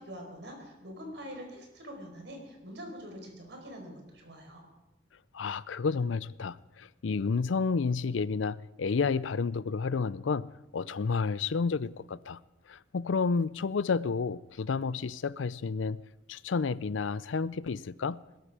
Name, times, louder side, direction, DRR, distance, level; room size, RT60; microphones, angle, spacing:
voice 1, 0.0-4.6, equal, 65° right, 4.8 m, -44 dB
voice 2, 5.3-12.4 12.7-16.0 16.3-18.2, left 5 dB, 90° left, 0.5 m, -31 dB
21.5 x 13.5 x 4.9 m
head